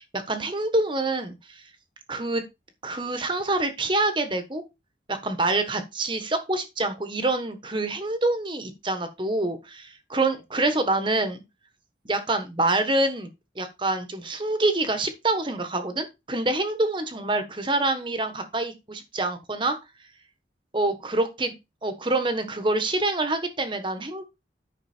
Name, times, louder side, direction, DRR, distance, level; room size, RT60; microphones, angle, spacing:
voice 1, 0.0-1.6 2.1-2.4 2.8-4.6 5.1-11.4 12.1-13.3 13.6-19.8 20.7-21.5 21.8-24.3, right 2 dB, 25° right, 8 dB, 1.3 m, -26 dB
9.8 x 6.2 x 4.4 m, 0.24 s
head